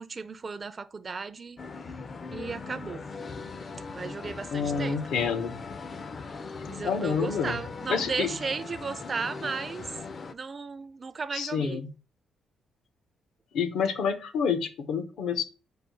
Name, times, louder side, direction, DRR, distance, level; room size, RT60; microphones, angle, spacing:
voice 1, 0.0-1.6 2.3-3.0 3.9-5.0 6.7-9.9 10.3-11.8, right 4 dB, 35° right, 0.4 m, -35 dB
sound 1, 1.6-10.3, left 4 dB, 40° left, 0.4 m, -40 dB
voice 2, 4.5-5.6 6.8-7.6 7.9-8.3 11.3-11.9 13.5-15.4, left 6 dB, 75° left, 0.7 m, -28 dB
4.8 x 2.3 x 4.5 m
cardioid pair, 90°, 0 cm